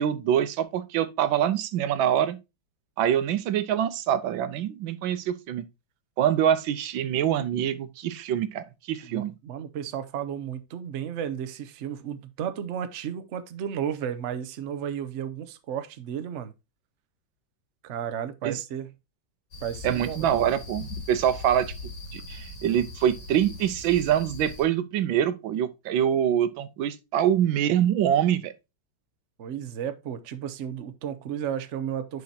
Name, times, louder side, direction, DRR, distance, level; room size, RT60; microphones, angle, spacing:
voice 1, 0.0-2.4 3.0-5.6 6.2-9.3 18.4-18.6 19.8-21.7 22.1-28.5, right 10 dB, 90° right, 1.5 m, -25 dB
voice 2, 9.0-16.5 17.8-18.9 19.6-20.3 29.4-32.2, right 9 dB, 55° right, 0.8 m, -33 dB
sound 1, 19.5-24.6, left 3 dB, 65° left, 2.6 m, -40 dB
10.5 x 4.8 x 2.8 m
omnidirectional pair, 2.1 m